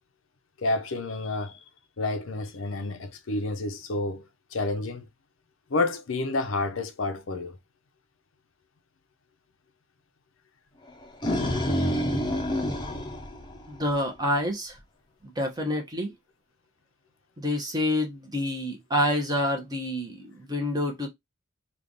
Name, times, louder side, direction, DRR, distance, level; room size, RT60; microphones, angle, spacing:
voice 1, 0.6-1.6 2.0-5.0 5.7-7.6, left 2 dB, 65° left, 0.6 m, -29 dB
sound 1, 10.9-14.1, equal, 20° left, 0.7 m, -28 dB
voice 2, 13.7-14.8 15.2-16.1 17.4-21.1, left 1 dB, 20° right, 1.0 m, -28 dB
3.3 x 2.4 x 3.8 m
head